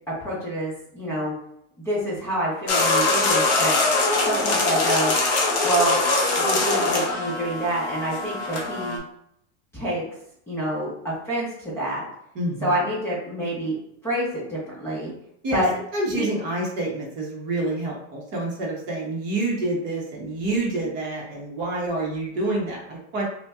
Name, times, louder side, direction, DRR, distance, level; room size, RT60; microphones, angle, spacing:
voice 1, 0.1-1.3 1.8-3.8 4.2-5.2 5.6-6.0 6.3-9.0 9.7-10.1 10.5-12.1 12.6-13.8 14.0-15.1 15.5-15.7 16.1-16.3, right 1 dB, 5° left, -9 dB, 0.8 m, -27 dB
sound 1, 2.7-9.0, left 3 dB, 25° left, 0.4 m, -22 dB
voice 2, 12.3-12.7 15.4-15.6 15.9-23.3, right 2 dB, 30° right, -3 dB, 0.9 m, -27 dB
5.5 x 2.2 x 2.4 m, 0.72 s
supercardioid pair, 170°, 37 cm